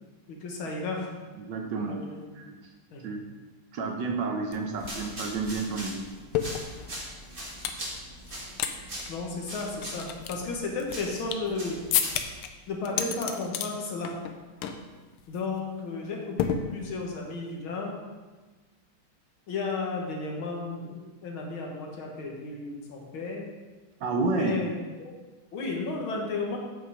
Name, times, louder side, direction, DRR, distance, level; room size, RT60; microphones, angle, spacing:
voice 1, 0.3-1.1 1.8-2.2 2.9-3.2 9.1-11.8 12.7-14.2 15.3-18.0 19.5-23.5 24.4-25.2 25.5-26.6, left 3 dB, 70° left, 0 dB, 2.1 m, -33 dB
voice 2, 1.5-2.0 2.4-2.6 3.0-3.2 3.7-6.0 24.0-24.6, right 3 dB, 65° right, 3 dB, 1.3 m, -30 dB
sound 1, 4.5-4.6 4.8-7.8 8.2-8.7 9.0-9.1 9.6-11.5 11.9-12.5 12.8-13.7 14.0-14.3 14.6-14.9 15.2-15.4 16.4-17.1, left 9 dB, 90° left, 1.6 m, -31 dB
sound 2, 4.7-12.4, right 1 dB, 25° right, 1.7 m, -41 dB
8.6 x 5.8 x 4.9 m, 1.3 s
omnidirectional pair, 2.4 m